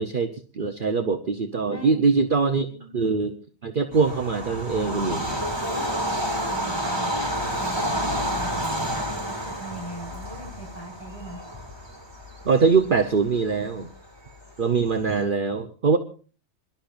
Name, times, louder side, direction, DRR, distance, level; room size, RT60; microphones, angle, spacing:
voice 1, 0.0-2.7 2.9-3.4 3.6-5.3 12.4-13.9 14.6-16.0, right 5 dB, 45° right, 6 dB, 1.0 m, -23 dB
voice 2, 2.6-3.0 5.6-6.0 6.3-11.4, right 1 dB, 10° left, 0 dB, 5.3 m, -40 dB
Bird vocalization bird call bird song / Train, 3.9-15.1, equal, 20° right, 2.5 m, -30 dB
26.0 x 12.0 x 2.6 m, 0.38 s
omnidirectional pair, 1.4 m